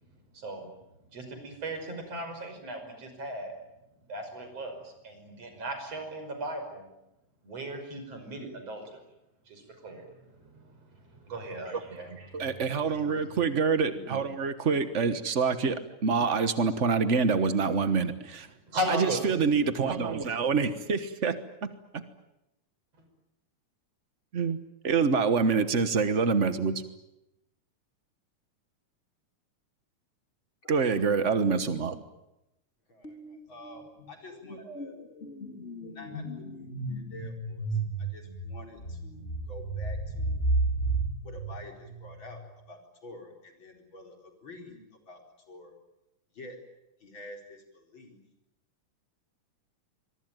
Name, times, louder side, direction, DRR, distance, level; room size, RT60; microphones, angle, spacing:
voice 1, 0.3-0.7 1.1-3.5 4.1-6.9 7.4-9.0 9.5-10.1 10.4-12.3 12.6-13.0 18.7-19.3, right 1 dB, 55° right, 6 dB, 6.6 m, -37 dB
voice 2, 12.3-18.5 18.9-21.4 21.6-22.0 24.3-24.6 24.8-26.8 30.7-32.0, right 5 dB, 75° right, 11 dB, 0.6 m, -26 dB
voice 3, 32.9-34.9 35.9-36.2 36.5-40.4 41.2-42.4 42.7-44.8 45.1-45.2 45.5-45.7 46.3-46.6 47.0-48.2, left 1 dB, 40° left, 3 dB, 5.1 m, -48 dB
sound 1, 33.0-33.4 33.6-42.4, right 2 dB, 20° left, 4.1 m, -33 dB
25.5 x 23.0 x 9.1 m, 0.90 s
omnidirectional pair, 3.4 m